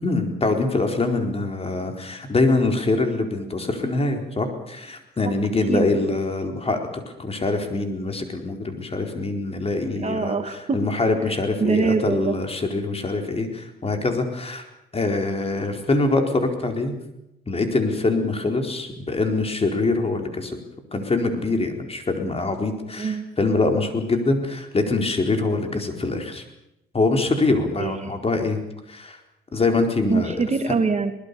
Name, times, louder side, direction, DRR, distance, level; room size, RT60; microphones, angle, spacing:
voice 1, 0.0-10.4 10.7-14.6 14.9-17.0 17.5-20.6 20.9-26.4 26.9-28.6 28.9-29.2 29.5-30.3, left 3 dB, 30° left, 4 dB, 4.4 m, -24 dB
voice 2, 10.0-10.8 11.6-12.4 23.0-23.3 27.8-28.2 30.1-31.1, right 4 dB, 35° right, 7 dB, 2.2 m, -24 dB
23.5 x 20.0 x 7.0 m, 0.86 s
cardioid pair, 90°, 20 cm